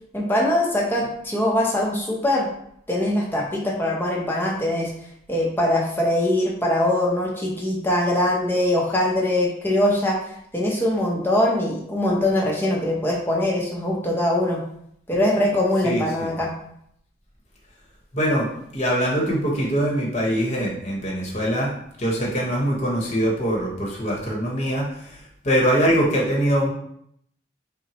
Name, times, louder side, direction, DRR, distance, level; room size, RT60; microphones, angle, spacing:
voice 1, 0.1-2.5 2.9-4.9 5.3-10.2 10.5-14.6 15.1-16.5, left 1 dB, 10° left, -2 dB, 0.6 m, -22 dB
voice 2, 15.8-16.3 18.1-18.5 18.7-21.7 22.0-25.2 25.4-26.7, equal, 35° left, -2 dB, 0.9 m, -23 dB
5.7 x 2.1 x 3.0 m, 0.71 s
head